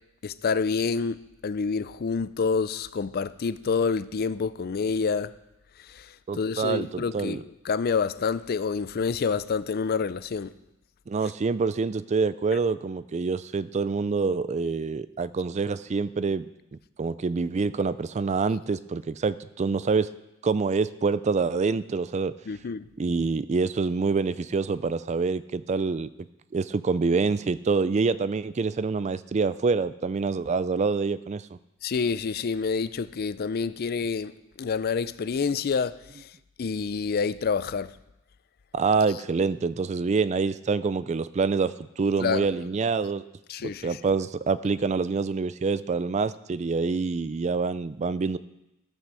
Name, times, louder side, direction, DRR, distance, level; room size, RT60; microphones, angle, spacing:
voice 1, 0.2-1.2 1.4-5.3 5.8-10.5 22.5-22.9 31.8-34.3 34.6-36.3 36.6-37.9 42.2-42.5 43.5-44.0, left 5 dB, 45° left, 0.4 m, -28 dB
voice 2, 6.3-7.4 11.1-16.5 16.7-20.1 20.4-22.3 23.0-26.1 26.5-31.6 38.7-43.2 43.6-48.4, right 4 dB, 30° right, 0.3 m, -26 dB
14.5 x 6.1 x 6.8 m
head